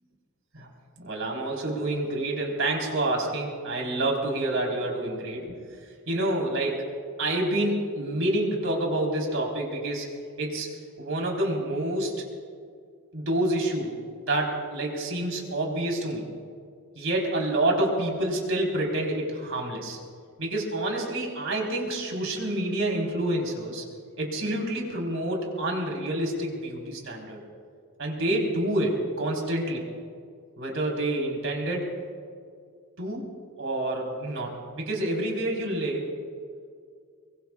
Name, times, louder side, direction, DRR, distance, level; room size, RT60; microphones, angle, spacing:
voice 1, 1.0-5.6 5.8-6.9 7.2-10.7 11.0-12.3 13.1-16.3 17.0-20.0 20.4-23.8 24.2-27.4 28.0-29.8 30.6-31.9 33.0-33.2 33.6-36.2, right 1 dB, 65° right, -1 dB, 4.0 m, -28 dB
23.5 x 23.5 x 2.4 m, 2.2 s
head